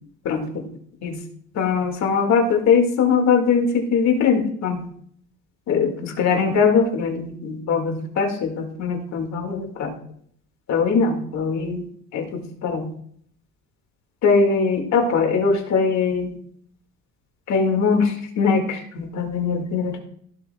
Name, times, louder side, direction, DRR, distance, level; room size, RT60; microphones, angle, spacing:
voice 1, 0.2-0.6 1.0-1.2 1.5-4.8 5.7-9.9 10.7-11.8 12.1-12.9 14.2-16.4 17.5-20.0, left 5 dB, 55° left, 3 dB, 2.1 m, -21 dB
15.5 x 7.5 x 2.3 m, 0.63 s
cardioid pair, 165°, 34 cm